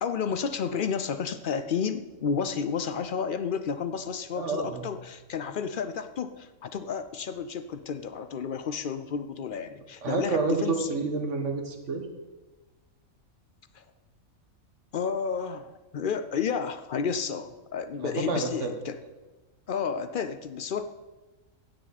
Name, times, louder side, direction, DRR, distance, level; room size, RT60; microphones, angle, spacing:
voice 1, 0.0-10.9 13.7-13.8 14.9-19.0 19.7-20.8, left 6 dB, 60° left, 10 dB, 0.5 m, -31 dB
voice 2, 4.3-4.8 10.0-12.0 18.0-18.7, right 4 dB, 60° right, 5 dB, 1.6 m, -29 dB
16.5 x 6.7 x 4.1 m, 1.2 s
omnidirectional pair, 1.4 m